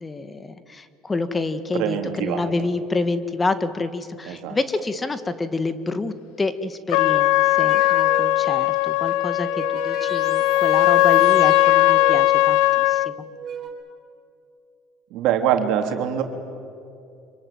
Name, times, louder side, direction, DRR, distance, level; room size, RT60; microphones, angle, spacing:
voice 1, 0.0-13.3, left 3 dB, 20° left, 12 dB, 1.7 m, -28 dB
voice 2, 1.7-2.7 4.3-4.6 15.1-16.2, right 9 dB, 70° right, 5 dB, 3.4 m, -24 dB
Trumpet, 6.9-13.1, left 17 dB, 75° left, 0.6 m, -18 dB
sound 1, 7.7-8.5 9.2-12.4 13.2-13.7, right 7 dB, 45° right, 5.9 m, -35 dB
25.5 x 23.5 x 9.3 m, 2.6 s
supercardioid pair, 90°, 0 cm